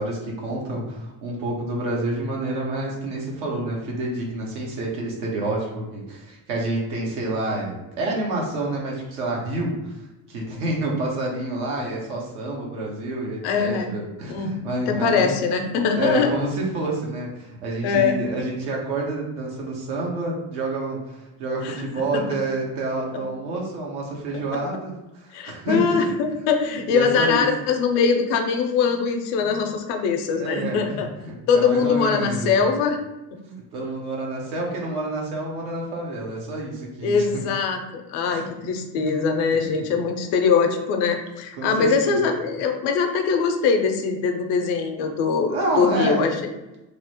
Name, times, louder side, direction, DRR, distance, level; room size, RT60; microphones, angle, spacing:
voice 1, 0.0-15.3 15.9-26.1 26.6-27.5 28.9-29.0 29.4-29.6 30.4-32.5 33.4-37.4 38.3-38.5 39.0-39.1 39.5-39.7 41.6-42.3 45.5-46.3, right 2 dB, 85° right, -2 dB, 0.9 m, -28 dB
voice 2, 13.4-14.0 14.3-14.6 14.9-16.3 17.8-18.2 21.6-21.8 22.1-22.2 24.3-24.4 25.3-31.1 31.5-33.0 37.0-46.3, left 5 dB, 75° left, 5 dB, 0.6 m, -22 dB
2.9 x 2.0 x 2.8 m, 1.0 s
hypercardioid pair, 65°, 43 cm